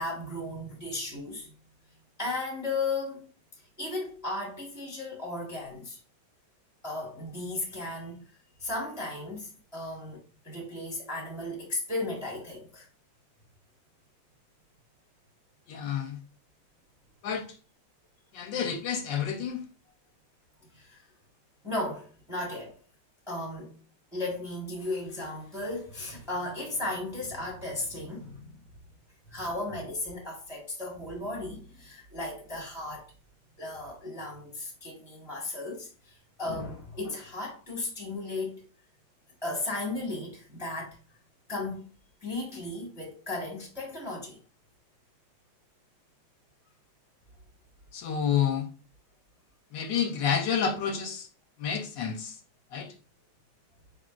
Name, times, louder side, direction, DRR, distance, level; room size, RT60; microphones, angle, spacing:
voice 1, 0.0-1.5 2.2-3.3 3.8-6.0 6.8-8.2 8.6-12.9 20.7-21.0 21.6-22.7 23.3-23.8 24.1-28.6 29.3-33.1 33.6-38.6 39.4-41.0 41.5-41.9 42.2-44.4, left 2 dB, ahead, 0.9 m, -35 dB
voice 2, 15.7-16.2 17.2-17.5 18.3-19.6 47.9-48.7 49.7-51.3 51.6-52.4 52.7-52.9, left 7 dB, 75° left, 1.2 m, -29 dB
4.9 x 3.7 x 2.4 m
omnidirectional pair, 2.2 m